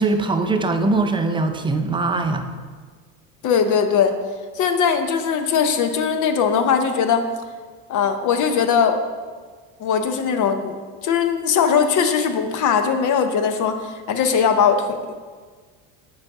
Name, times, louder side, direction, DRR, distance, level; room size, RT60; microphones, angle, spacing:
voice 1, 0.0-2.4, right 3 dB, 15° right, 6 dB, 0.4 m, -21 dB
voice 2, 3.4-4.2 4.5-7.3 7.9-9.0 9.8-10.7 11.0-15.0, left 6 dB, 45° left, 7 dB, 0.7 m, -20 dB
7.5 x 4.8 x 3.5 m, 1.5 s
supercardioid pair, 95°, 42 cm